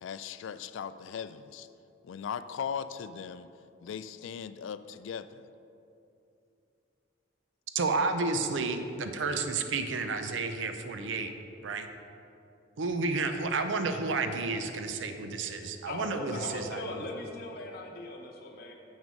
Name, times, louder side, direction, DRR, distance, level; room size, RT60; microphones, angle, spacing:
voice 1, 0.0-1.7 2.0-3.5 3.8-5.5, left 7 dB, 80° left, 13 dB, 0.3 m, -38 dB
voice 2, 7.7-11.3 11.6-11.9 12.8-16.3, right 3 dB, 75° right, 7 dB, 0.5 m, -31 dB
voice 3, 15.6-18.7, left 1 dB, 55° left, -1 dB, 0.9 m, -39 dB
7.2 x 6.1 x 5.3 m, 2.7 s
head